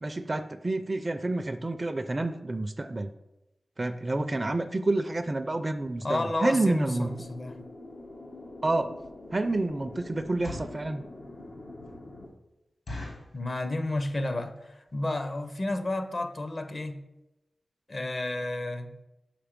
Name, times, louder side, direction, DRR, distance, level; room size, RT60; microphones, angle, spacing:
voice 1, 0.0-3.1 3.8-7.1 8.6-8.9 9.3-11.0, right 2 dB, 30° right, 10 dB, 0.4 m, -29 dB
voice 2, 6.0-7.6 13.3-17.0 17.9-18.9, left 2 dB, 45° left, 8 dB, 0.6 m, -31 dB
sound 1, 6.6-12.3, left 2 dB, 90° left, 1.0 m, -45 dB
sound 2, 9.3-9.5 10.2-10.8 11.4-11.5 11.8-11.9 12.3-12.4 12.9-13.4 14.0-14.2 14.5-14.6 14.8-15.1 15.6-15.7 16.0-16.1 16.5-16.6 16.8-16.9, left 1 dB, 65° left, 1.7 m, -40 dB
5.9 x 4.8 x 5.1 m, 0.93 s
wide cardioid pair, 90°, 0 cm